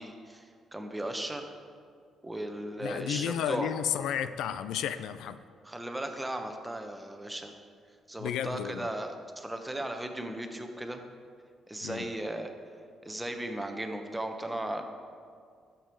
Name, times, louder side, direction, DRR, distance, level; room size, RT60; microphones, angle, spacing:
voice 1, 0.0-1.5 2.2-3.7 5.6-7.5 8.1-11.0 11.7-12.5 13.0-14.8, right 1 dB, 10° right, 5 dB, 1.1 m, -36 dB
voice 2, 2.8-5.4 8.2-8.9 11.8-12.1, left 9 dB, 85° left, 12 dB, 0.4 m, -32 dB
12.5 x 7.0 x 4.6 m, 2.2 s
cardioid pair, 90°, 0 cm